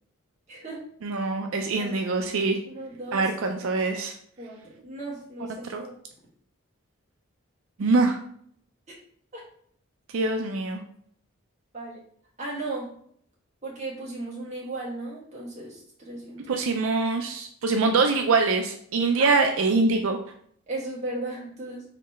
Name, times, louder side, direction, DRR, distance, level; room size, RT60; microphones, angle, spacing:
voice 1, 0.5-0.8 1.8-1.9 2.7-3.3 4.4-5.9 9.3-9.4 11.7-12.0 12.4-12.9 13.6-16.6 19.2-19.4 20.7-21.8, right 2 dB, 35° right, -5 dB, 1.7 m, -36 dB
voice 2, 1.0-2.6 3.1-4.1 5.6-5.8 7.8-8.2 10.1-10.8 16.5-20.2, right 3 dB, 80° right, 4 dB, 0.5 m, -24 dB
4.1 x 3.1 x 4.1 m, 0.63 s
head